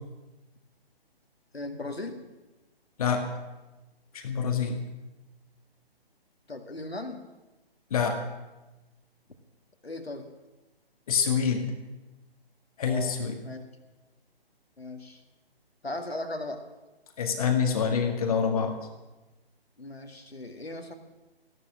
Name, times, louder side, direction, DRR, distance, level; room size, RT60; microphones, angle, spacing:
voice 1, 1.5-2.2 6.5-7.2 9.8-10.3 12.9-13.2 13.4-13.6 14.8-15.2 15.8-16.6 19.8-20.9, left 2 dB, 80° left, 5 dB, 2.3 m, -37 dB
voice 2, 3.0-3.3 4.1-4.8 7.9-8.2 11.1-11.7 12.8-13.4 17.2-18.8, left 6 dB, 35° left, 5 dB, 1.8 m, -26 dB
15.0 x 12.0 x 7.5 m, 1.1 s
figure-of-eight pair, 140°, 30 cm